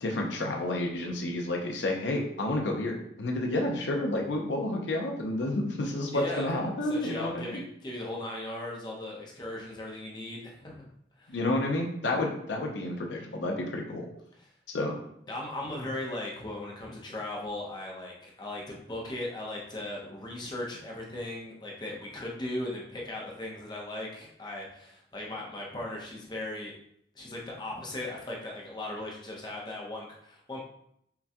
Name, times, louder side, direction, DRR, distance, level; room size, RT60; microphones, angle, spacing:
voice 1, 0.0-7.6 11.3-14.1 14.7-15.0, left 1 dB, 80° left, 1 dB, 0.6 m, -30 dB
voice 2, 6.1-6.5 6.8-10.9 11.2-11.4 14.4-14.5 15.3-26.7 27.1-30.6, left 1 dB, 25° left, -2 dB, 0.7 m, -38 dB
5.7 x 2.3 x 2.8 m, 0.72 s
head